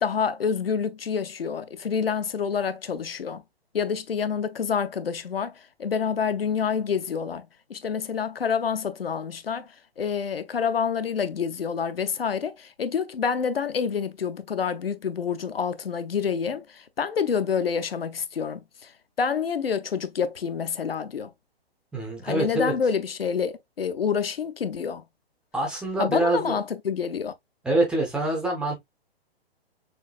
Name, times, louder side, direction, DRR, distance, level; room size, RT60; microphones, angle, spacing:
voice 1, 0.0-3.4 3.7-18.9 19.2-21.3 22.2-25.0 26.0-27.3, left 6 dB, 65° left, 0.7 m, -28 dB
voice 2, 21.9-22.7 25.5-26.6 27.6-28.7, right 2 dB, 5° right, 0.4 m, -25 dB
6.3 x 2.5 x 2.4 m
figure-of-eight pair, 120°, 31 cm